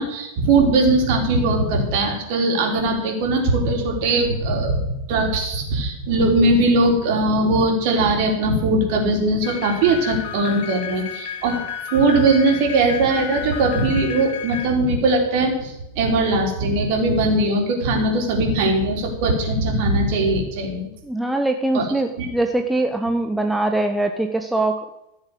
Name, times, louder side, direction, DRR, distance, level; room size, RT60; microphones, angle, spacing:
voice 1, 0.0-4.8 5.1-11.6 11.9-20.9 21.7-21.9 22.2-22.3, right 2 dB, 45° right, 1 dB, 4.0 m, -20 dB
sound 1, 9.4-14.7, left 8 dB, 50° left, 2.1 m, -32 dB
voice 2, 21.0-24.8, right 2 dB, 5° right, 4 dB, 1.0 m, -22 dB
14.5 x 7.4 x 8.2 m, 0.88 s
figure-of-eight pair, 90°, 0 cm